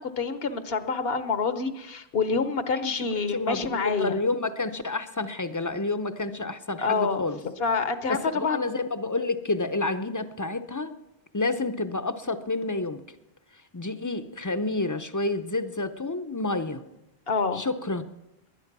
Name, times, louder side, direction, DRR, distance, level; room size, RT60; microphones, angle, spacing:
voice 1, 0.0-4.2 6.8-8.7 17.3-17.6, left 4 dB, 70° left, 10 dB, 1.2 m, -27 dB
voice 2, 2.8-7.4 8.1-11.0 11.3-13.0 13.7-16.8 17.5-18.0, left 2 dB, 20° left, 10 dB, 0.6 m, -29 dB
20.5 x 10.0 x 6.0 m, 0.94 s
omnidirectional pair, 1.1 m